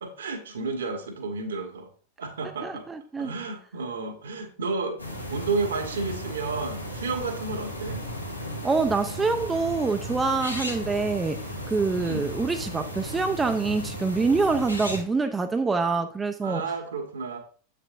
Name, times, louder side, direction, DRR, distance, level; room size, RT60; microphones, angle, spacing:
voice 1, 0.0-1.9 2.2-2.9 3.2-5.0 5.3-8.0 12.0-12.2 16.4-17.4, right 4 dB, 65° right, 6 dB, 1.4 m, -31 dB
voice 2, 2.6-3.3 8.6-11.4 11.7-16.6, right 4 dB, 15° right, 7 dB, 0.5 m, -25 dB
sound 1, 5.0-15.0, equal, 90° left, 2.0 m, -35 dB
8.2 x 6.7 x 2.5 m, 0.43 s
figure-of-eight pair, 90°, 0 cm